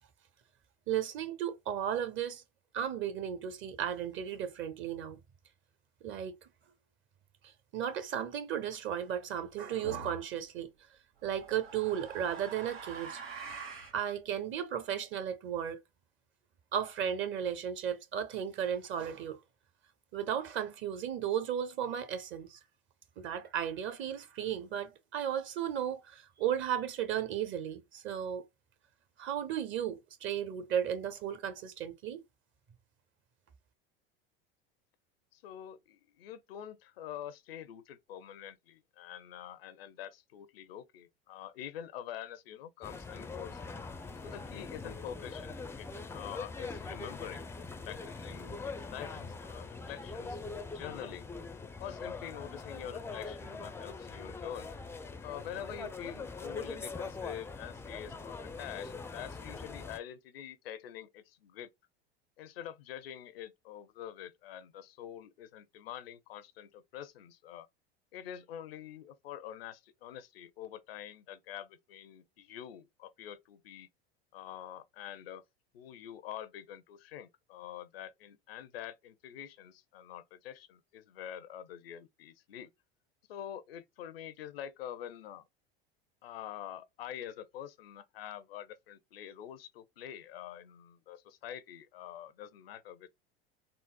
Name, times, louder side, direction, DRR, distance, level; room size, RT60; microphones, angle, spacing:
voice 1, 0.9-2.4 2.7-5.2 6.0-6.3 7.7-10.7 11.2-13.2 13.9-15.8 16.7-19.4 20.1-22.6 23.2-28.4 29.2-32.2, right 9 dB, 40° right, 0.9 m, -35 dB
sound 1, 9.8-10.2 11.2-14.0, right 4 dB, 90° right, 1.2 m, -45 dB
voice 2, 35.3-43.6 44.2-47.4 47.8-50.4 50.7-51.3 51.8-54.7 55.2-61.7 62.4-67.7 68.1-73.9 74.3-75.4 75.7-82.7 83.3-85.5 86.2-93.1, left 10 dB, 80° left, 0.6 m, -46 dB
sound 2, 42.8-60.0, left 4 dB, 10° left, 0.4 m, -43 dB
3.9 x 2.0 x 2.2 m
hypercardioid pair, 90°, 29 cm